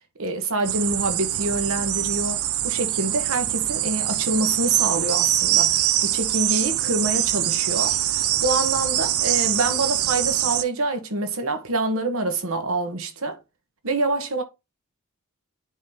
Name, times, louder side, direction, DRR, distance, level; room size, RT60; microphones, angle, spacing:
voice 1, 0.2-13.4 13.8-14.4, right 2 dB, 70° right, 1.2 m, -26 dB
sound 1, 0.6-10.6, right 13 dB, 85° right, 0.5 m, -23 dB
9.6 x 3.9 x 2.9 m
head